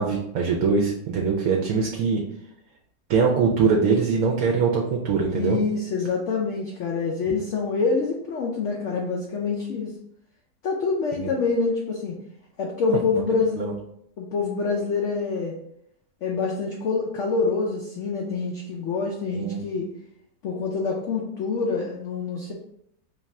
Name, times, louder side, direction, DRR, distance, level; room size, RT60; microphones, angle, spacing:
voice 1, 0.0-2.2 3.1-5.6 11.2-11.3 12.9-13.0 13.6-13.7 19.3-19.6, right 5 dB, 70° right, -1 dB, 0.9 m, -22 dB
voice 2, 5.3-9.9 10.6-12.1 12.6-13.6 14.2-15.6 16.2-19.9 20.4-22.5, left 4 dB, 75° left, -1 dB, 0.7 m, -26 dB
3.2 x 2.4 x 4.1 m, 0.73 s
omnidirectional pair, 1.8 m